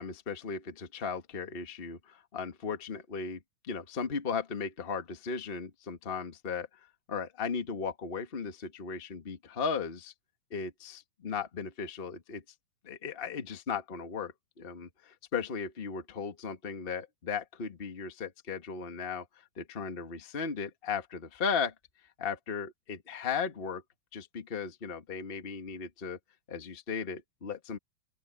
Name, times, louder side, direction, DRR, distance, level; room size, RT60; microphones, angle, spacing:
voice 1, 0.0-6.7 7.1-10.1 10.5-12.4 12.8-19.2 19.6-21.7 22.2-23.8 24.1-26.2 26.5-27.8, left 5 dB, 35° left, 0.9 m, -36 dB
open air
omnidirectional pair, 3.9 m